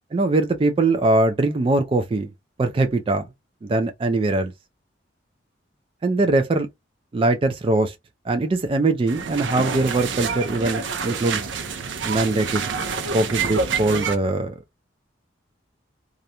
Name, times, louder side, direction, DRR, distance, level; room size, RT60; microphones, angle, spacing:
voice 1, 0.1-2.3 2.6-3.2 3.6-4.5 6.0-6.7 7.1-7.9 8.3-11.5 12.0-12.7 13.1-14.5, right 2 dB, 30° right, 0.3 m, -21 dB
sound 1, 9.1-14.2, right 5 dB, 85° right, 0.5 m, -27 dB
2.4 x 2.1 x 2.8 m
head